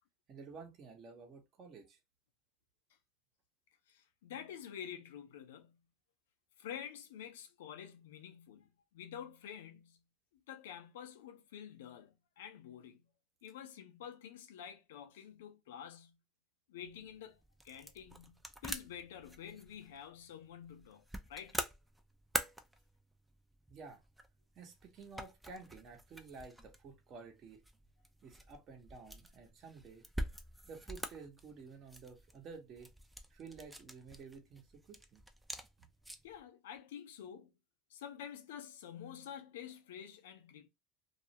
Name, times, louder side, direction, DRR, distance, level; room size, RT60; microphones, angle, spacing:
voice 1, 0.3-2.0 23.7-24.0 24.5-27.6 28.2-30.1 30.7-32.9 33.3-35.2 35.8-35.9, right 4 dB, 45° right, 0.8 m, -52 dB
voice 2, 3.9-5.8 6.6-10.0 10.5-13.1 13.4-16.2 16.7-21.6 36.2-37.5 37.9-40.7, left 9 dB, 85° left, 0.5 m, -49 dB
sound 1, 16.8-36.4, right 1 dB, 5° right, 0.4 m, -46 dB
2.3 x 2.0 x 2.8 m
supercardioid pair, 105°, 0 cm